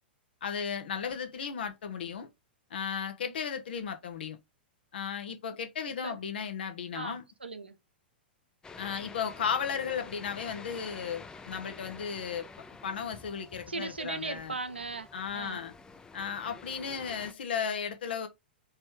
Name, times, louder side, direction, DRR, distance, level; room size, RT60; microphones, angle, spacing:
voice 1, 0.4-2.3 2.7-4.4 4.9-7.2 8.8-12.5 12.8-14.6 15.1-15.7 16.1-18.3, left 7 dB, 70° left, 1.4 m, -35 dB
voice 2, 6.9-7.8 13.7-15.6, right 3 dB, 90° right, 0.8 m, -38 dB
sound 1, 8.6-17.3, left 4 dB, 15° left, 0.5 m, -49 dB
4.2 x 3.8 x 3.0 m
figure-of-eight pair, 105°, 6 cm